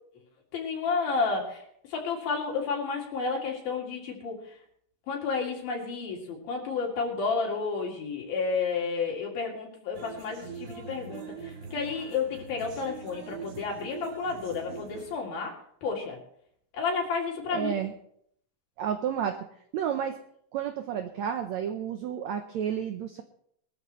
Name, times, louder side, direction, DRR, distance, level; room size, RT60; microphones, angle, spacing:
voice 1, 0.5-1.6 1.9-4.4 5.1-16.2 16.7-17.8, left 4 dB, 75° left, -1 dB, 4.3 m, -31 dB
sound 1, 9.9-15.2, right 5 dB, 70° right, 1.1 m, -42 dB
voice 2, 17.5-17.9 18.8-19.4 19.7-20.2 20.5-23.2, right 9 dB, 90° right, 7 dB, 1.6 m, -31 dB
21.0 x 13.5 x 3.2 m, 0.67 s
omnidirectional pair, 4.3 m